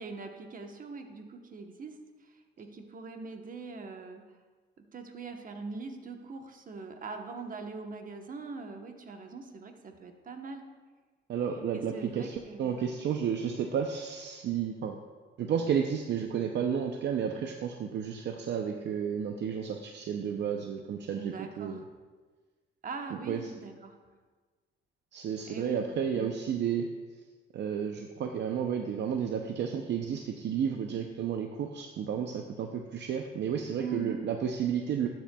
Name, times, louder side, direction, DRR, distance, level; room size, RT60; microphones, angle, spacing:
voice 1, 0.0-4.2 4.8-10.7 11.7-12.9 21.2-21.8 22.8-23.9 25.5-25.8 26.1-26.3 33.8-34.2, right 4 dB, 45° right, 5 dB, 1.0 m, -42 dB
voice 2, 11.3-15.0 15.4-21.8 23.3-23.4 25.1-26.9 27.5-35.1, right 7 dB, 60° right, 4 dB, 0.6 m, -32 dB
12.5 x 7.5 x 2.3 m, 1.4 s
cardioid pair, 90°, 20 cm